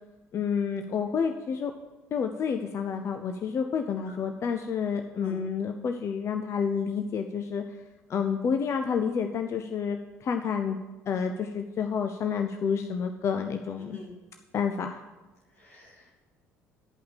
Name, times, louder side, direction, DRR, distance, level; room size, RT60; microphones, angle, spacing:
voice 1, 0.3-1.7 2.1-7.6 8.1-10.8 11.1-14.0 14.5-15.0, left 6 dB, 40° left, 6 dB, 0.6 m, -29 dB
voice 2, 13.8-14.1 15.5-16.3, left 1 dB, 80° left, -4 dB, 2.6 m, -48 dB
10.5 x 5.7 x 7.4 m, 1.1 s
figure-of-eight pair, 55°, 8 cm